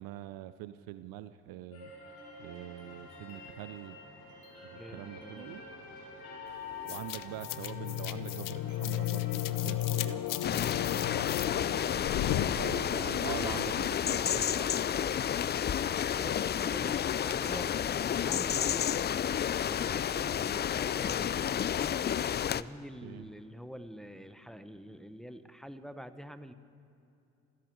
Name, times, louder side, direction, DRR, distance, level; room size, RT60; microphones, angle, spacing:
voice 1, 0.0-1.9 2.4-4.0 4.6-5.6 6.8-10.3 12.5-14.9 23.0-23.3, right 14 dB, 65° right, 14 dB, 0.6 m, -44 dB
sound 1, 1.7-9.4, left 4 dB, 75° left, 3.8 m, -47 dB
voice 2, 4.7-5.7 10.6-12.7 16.2-19.2 19.6-22.0 22.5-26.5, equal, ahead, 10 dB, 1.1 m, -47 dB
sound 2, 6.9-13.2, left 12 dB, 60° left, 0.7 m, -34 dB
sound 3, 10.4-22.6, left 9 dB, 30° left, 0.4 m, -31 dB
28.5 x 11.0 x 4.7 m, 2.8 s
hypercardioid pair, 50°, 37 cm